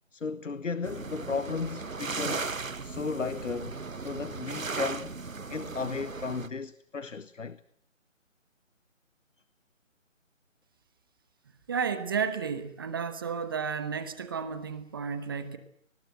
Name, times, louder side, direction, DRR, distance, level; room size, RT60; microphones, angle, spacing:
voice 1, 0.1-2.5 2.8-5.1 5.5-7.6, left 5 dB, 70° left, 1.2 m, -35 dB
sound 1, 0.8-6.5, right 4 dB, 85° right, 1.2 m, -36 dB
voice 2, 11.7-15.6, right 6 dB, 15° right, 1.2 m, -32 dB
27.0 x 20.5 x 7.9 m
figure-of-eight pair, 155°, 39 cm